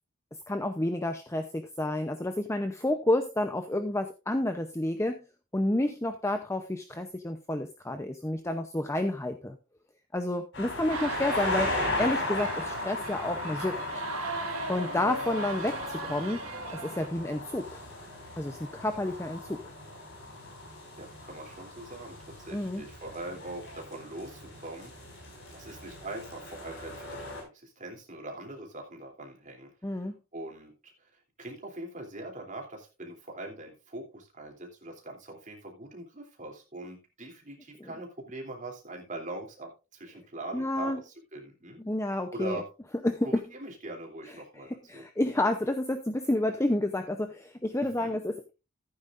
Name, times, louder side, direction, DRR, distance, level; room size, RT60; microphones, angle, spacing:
voice 1, 0.5-5.2 5.5-9.6 10.1-13.9 14.7-16.4 16.7-17.8 18.4-19.6 22.5-22.8 29.8-30.2 37.8-37.9 40.5-41.0 41.8-42.6 43.0-43.4 44.7-48.5, left 1 dB, 10° left, 7 dB, 0.6 m, -30 dB
sound 1, 10.5-27.4, left 2 dB, 55° left, 5.7 m, -37 dB
sound 2, 10.9-17.1, right 3 dB, 70° right, 1.8 m, -38 dB
voice 2, 21.0-25.2 25.5-31.1 31.4-41.8 42.3-42.7 43.2-45.0 47.8-48.2, right 1 dB, 35° right, 1 dB, 3.0 m, -42 dB
14.5 x 9.2 x 2.5 m, 0.29 s
head